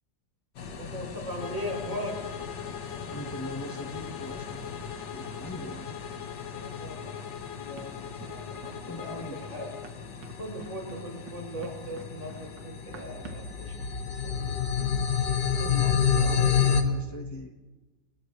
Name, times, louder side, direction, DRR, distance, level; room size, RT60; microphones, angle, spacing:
sound 1, 0.6-16.8, left 7 dB, 70° left, 1.9 m, -31 dB
voice 1, 0.7-2.5 6.5-9.7 10.4-15.0, equal, 40° right, -3 dB, 7.5 m, -39 dB
Bowed string instrument, 1.4-9.9, left 10 dB, 85° left, 1.7 m, -42 dB
voice 2, 3.1-6.0 8.8-9.4 15.6-17.6, left 1 dB, 10° left, 2 dB, 1.3 m, -41 dB
Run, 7.8-13.6, right 6 dB, 75° right, 2.3 m, -50 dB
29.5 x 28.5 x 3.3 m, 1.2 s
omnidirectional pair, 2.0 m